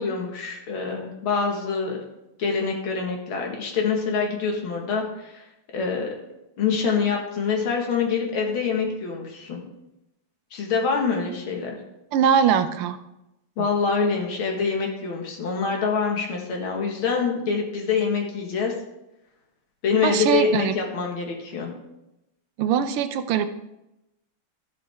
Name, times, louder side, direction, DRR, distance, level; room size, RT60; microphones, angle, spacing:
voice 1, 0.0-2.0 2.4-5.4 5.7-6.1 6.6-9.6 10.5-11.7 13.6-18.7 19.8-21.7, left 5 dB, 70° left, 1 dB, 2.4 m, -25 dB
voice 2, 12.1-13.0 13.6-13.7 20.0-20.8 22.6-23.5, right 8 dB, 85° right, 9 dB, 1.6 m, -22 dB
12.5 x 7.5 x 3.5 m, 0.91 s
omnidirectional pair, 2.4 m